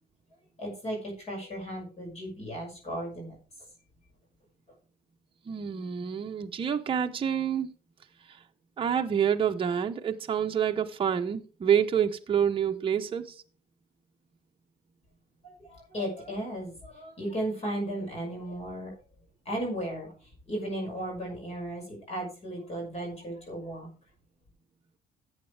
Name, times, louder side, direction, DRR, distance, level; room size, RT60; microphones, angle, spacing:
voice 1, 0.6-3.4 15.4-19.0 19.4-20.1 20.5-23.9, right 1 dB, 40° left, 6.1 m, -35 dB
voice 2, 5.5-7.7 8.3-8.4 8.8-13.4, right 8 dB, 30° right, 0.9 m, -27 dB
14.0 x 8.8 x 3.4 m
cardioid pair, 110°, 17 cm